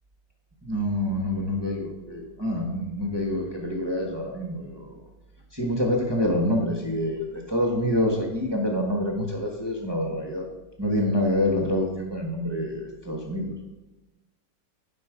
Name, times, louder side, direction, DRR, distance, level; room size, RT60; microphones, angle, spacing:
voice 1, 0.6-5.0 5.5-10.5 10.8-13.5, left 1 dB, 20° right, 0 dB, 0.8 m, -27 dB
11.0 x 5.2 x 5.0 m, 1.0 s
omnidirectional pair, 2.0 m